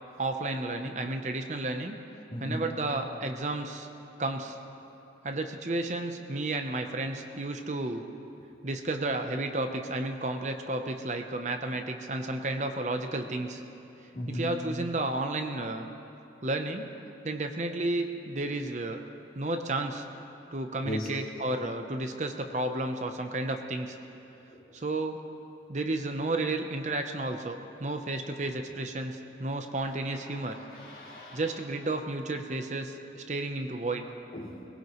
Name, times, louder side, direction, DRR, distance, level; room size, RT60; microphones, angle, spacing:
voice 1, 0.2-2.0 2.4-3.9 4.2-4.6 5.2-8.0 8.6-13.6 14.3-15.9 16.4-16.9 17.2-19.0 19.3-20.1 20.5-24.0 24.7-25.2 25.7-30.6 31.3-34.1, right 2 dB, 40° right, 5 dB, 0.8 m, -32 dB
voice 2, 2.3-2.7 14.1-14.6 20.8-21.2 24.5-24.7 29.8-30.0 30.2-31.4 34.3-34.6, equal, 50° left, -4 dB, 2.9 m, -37 dB
22.0 x 20.0 x 3.1 m, 2.8 s
head